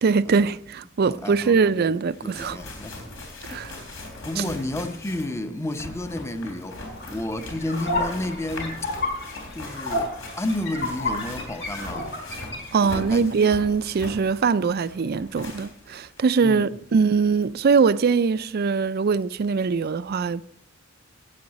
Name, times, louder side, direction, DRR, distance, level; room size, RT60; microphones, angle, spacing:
voice 1, 0.0-2.6 3.5-3.7 4.4-4.5 12.7-20.4, right 5 dB, 50° right, 0.4 m, -22 dB
voice 2, 1.0-1.9 2.2-3.2 3.5-3.6 4.2-6.8 7.1-8.9 9.5-12.2 12.8-13.5 16.4-16.7, left 1 dB, 15° left, 0.6 m, -31 dB
sound 1, 1.8-1.9 2.1-16.2 16.6-16.7 17.4-17.5, left 2 dB, 80° left, 3.8 m, -40 dB
sound 2, 6.7-12.7, left 2 dB, 55° left, 4.4 m, -31 dB
15.0 x 8.7 x 4.1 m
head